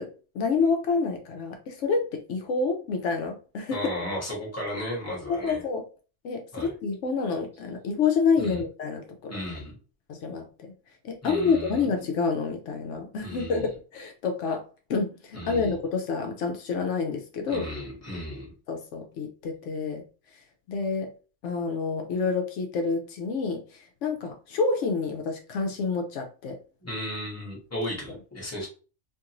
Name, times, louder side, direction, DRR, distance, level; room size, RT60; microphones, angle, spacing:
voice 1, 0.0-3.8 5.3-5.8 6.2-9.4 10.1-10.7 11.0-13.6 13.9-14.6 14.9-17.7 18.7-20.0 20.7-21.1 21.4-26.6, left 4 dB, 80° left, 4 dB, 0.9 m, -28 dB
voice 2, 3.7-5.6 6.5-6.7 8.4-8.6 9.3-9.8 11.2-11.9 13.2-13.7 15.3-15.8 17.5-18.5 26.8-28.7, left 1 dB, 15° left, -4 dB, 1.1 m, -35 dB
2.6 x 2.5 x 2.9 m, 0.36 s
omnidirectional pair, 1.2 m